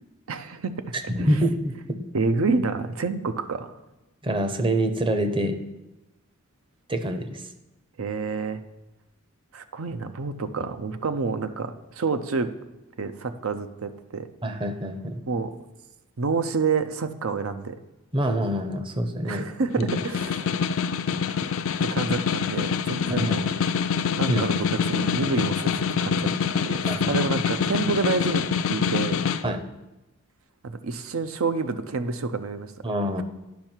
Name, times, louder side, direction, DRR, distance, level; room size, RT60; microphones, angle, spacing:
voice 1, 0.3-0.8 1.2-1.3 2.1-3.7 8.0-8.6 9.5-12.5 13.0-14.3 15.3-15.5 16.2-17.8 19.2-20.6 21.3-21.4 21.8-23.5 24.2-25.7 26.0-26.3 26.6-28.4 28.7-29.2 30.6-32.7, right 4 dB, 80° right, 10 dB, 0.6 m, -28 dB
voice 2, 1.1-2.0 4.2-5.6 6.9-7.4 14.4-15.2 18.1-19.5 19.8-19.9 23.1-23.4 24.3-24.4 26.9-27.2 29.4-29.6 32.8-33.2, right 1 dB, 25° right, 8 dB, 0.7 m, -26 dB
Snare drum, 19.7-29.4, left 6 dB, 70° left, 0.4 m, -25 dB
10.5 x 5.6 x 4.5 m, 1.0 s
head